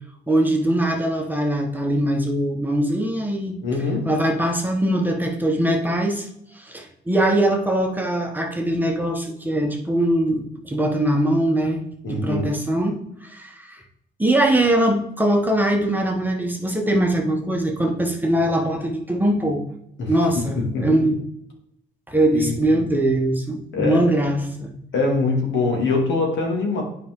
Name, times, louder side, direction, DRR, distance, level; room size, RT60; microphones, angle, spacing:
voice 1, 0.3-3.6 4.0-6.3 6.5-13.8 14.2-19.6 20.1-21.2 22.1-24.7, right 1 dB, 10° right, 1 dB, 1.3 m, -22 dB
voice 2, 3.6-4.1 12.0-12.5 20.0-21.1 22.3-22.8 23.7-24.0 24.9-26.8, left 3 dB, 70° left, 0 dB, 2.4 m, -23 dB
9.1 x 5.0 x 3.7 m, 0.74 s
cardioid pair, 90°, 20 cm